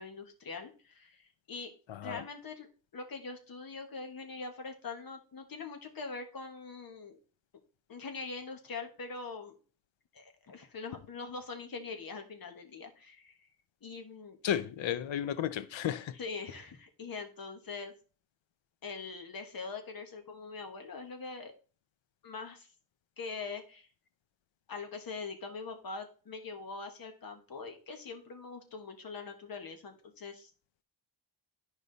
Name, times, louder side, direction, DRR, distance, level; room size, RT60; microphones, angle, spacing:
voice 1, 0.0-1.7 2.0-2.7 2.9-7.2 7.9-9.5 10.1-13.5 13.8-14.4 16.2-17.9 18.8-21.5 22.2-22.7 23.2-23.9 24.7-30.5, left 4 dB, 50° left, 1.6 m, -43 dB
voice 2, 1.9-2.2 14.4-16.2, left 10 dB, 90° left, 0.8 m, -33 dB
11.0 x 4.9 x 4.0 m
wide cardioid pair, 170°, 44 cm